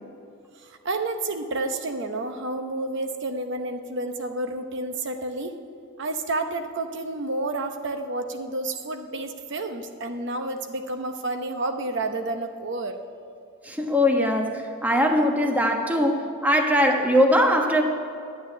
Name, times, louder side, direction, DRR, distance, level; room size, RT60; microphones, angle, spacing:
voice 1, 0.6-5.5 6.0-13.0, right 2 dB, 60° right, 6 dB, 0.8 m, -30 dB
voice 2, 13.6-17.8, equal, 10° right, 2 dB, 1.2 m, -21 dB
11.0 x 8.7 x 9.9 m, 2.6 s
head